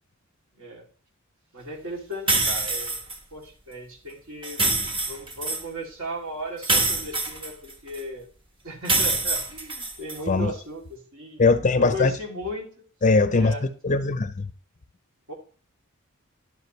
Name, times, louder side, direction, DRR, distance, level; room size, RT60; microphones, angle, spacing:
voice 1, 1.5-3.0 3.3-4.6 5.0-8.3 8.6-12.8 13.4-13.6 15.3-15.4, equal, 65° right, 2.8 m, -36 dB
sound 1, 2.3-3.2 4.4-5.6 6.6-8.0 8.8-10.2, right 2 dB, 25° right, 1.1 m, -25 dB
voice 2, 11.4-12.1 13.0-13.5 13.8-14.5, left 3 dB, 35° left, 0.5 m, -20 dB
11.0 x 7.9 x 3.2 m
head